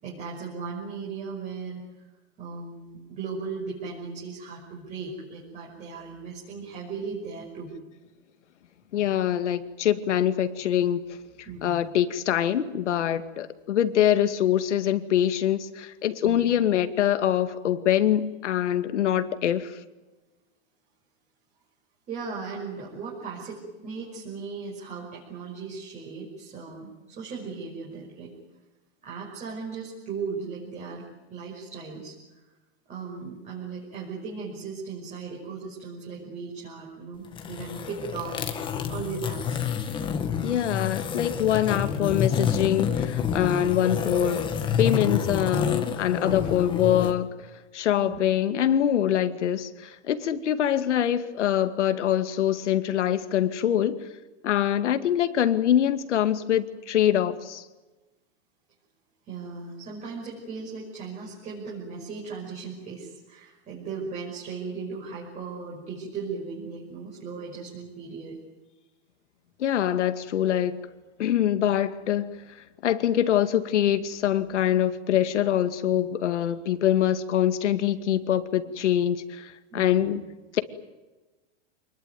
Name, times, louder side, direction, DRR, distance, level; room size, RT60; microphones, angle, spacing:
voice 1, 0.0-1.8 2.4-7.7 11.5-11.9 16.2-16.4 22.1-28.3 29.0-32.2 32.9-38.5 38.8-39.6 48.0-48.2 59.3-68.4 79.7-80.1, right 5 dB, 20° right, -3 dB, 5.8 m, -37 dB
voice 2, 8.9-11.2 11.6-19.8 40.4-44.4 44.8-47.3 47.7-54.1 54.4-57.7 69.6-70.9 71.2-80.2 80.5-80.6, left 10 dB, 85° left, 9 dB, 2.3 m, -24 dB
sound 1, 37.2-47.1, left 7 dB, 15° left, 1.8 m, -28 dB
27.5 x 21.0 x 9.5 m, 1.2 s
supercardioid pair, 165°, 34 cm